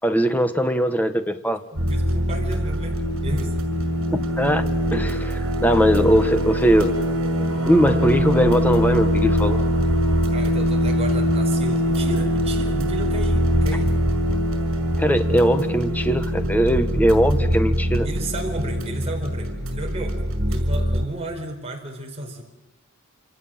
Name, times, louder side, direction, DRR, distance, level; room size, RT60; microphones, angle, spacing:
voice 1, 0.0-1.6 4.1-4.6 4.9-6.9 7.6-9.6 15.0-18.1, equal, 10° left, 8 dB, 1.6 m, -20 dB
voice 2, 1.7-3.6 10.3-13.9 18.0-20.2 20.5-22.4, right 1 dB, 30° right, 1 dB, 4.6 m, -32 dB
sound 1, 1.8-21.1, equal, 75° right, 5.8 m, -22 dB
27.5 x 27.0 x 7.7 m, 0.96 s
head